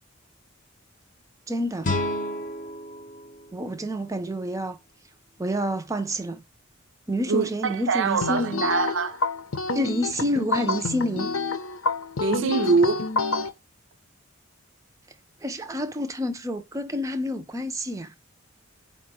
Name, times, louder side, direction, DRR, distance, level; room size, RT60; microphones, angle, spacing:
voice 1, 1.5-1.9 3.5-4.8 5.4-6.4 7.1-8.7 9.7-11.3 15.4-18.1, equal, 15° right, 0.4 m, -28 dB
sound 1, 1.8-4.8, left 1 dB, 40° left, 0.7 m, -32 dB
voice 2, 7.3-9.2 12.2-13.1, right 4 dB, 65° right, 0.5 m, -23 dB
sound 2, 8.2-13.5, left 3 dB, 85° left, 0.7 m, -28 dB
4.8 x 2.2 x 4.1 m
head